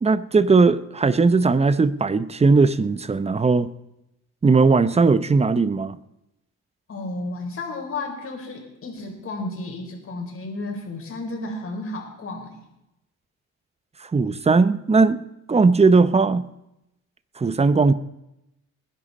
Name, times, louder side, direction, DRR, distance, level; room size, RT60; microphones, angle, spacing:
voice 1, 0.0-3.7 4.4-6.0 14.0-15.2 15.5-16.5 17.4-17.9, right 4 dB, 20° right, 0.7 m, -18 dB
voice 2, 6.9-12.6, left 2 dB, 45° left, 4.5 m, -32 dB
20.5 x 10.5 x 4.2 m
cardioid pair, 90°, 30 cm